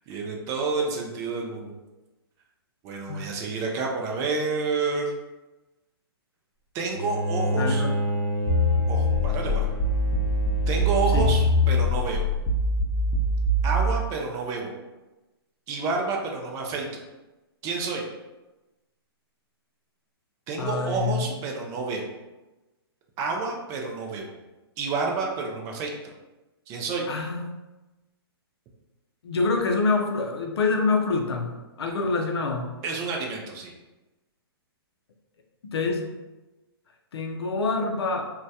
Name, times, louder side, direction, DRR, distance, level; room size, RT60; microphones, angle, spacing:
voice 1, 0.1-1.7 2.8-5.1 6.7-7.9 8.9-9.7 10.7-12.2 13.6-14.8 15.7-16.9 17.6-18.0 20.5-22.1 23.2-24.3 24.8-25.9 26.7-27.1 32.8-33.7, right 4 dB, 25° right, 0 dB, 0.3 m, -29 dB
Bowed string instrument, 6.9-12.1, equal, 45° left, 1.1 m, -30 dB
voice 2, 7.5-8.0 11.1-11.3 20.6-21.4 27.1-27.6 29.2-32.7 35.7-36.1 37.1-38.3, left 3 dB, 80° left, 3 dB, 0.4 m, -26 dB
sound 1, 8.5-13.9, left 1 dB, 30° left, 0.5 m, -23 dB
2.1 x 2.1 x 2.7 m, 1.1 s
hypercardioid pair, 130°, 13 cm